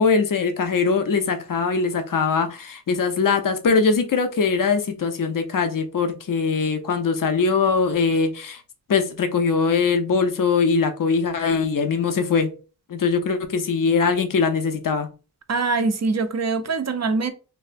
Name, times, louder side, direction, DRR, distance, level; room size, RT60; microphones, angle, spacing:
voice 1, 0.0-8.6 8.9-12.5 12.9-15.1, left 5 dB, 55° left, 0.6 m, -21 dB
voice 2, 15.5-17.3, right 3 dB, 45° right, 0.4 m, -23 dB
3.3 x 2.4 x 2.5 m
wide cardioid pair, 65°, 39 cm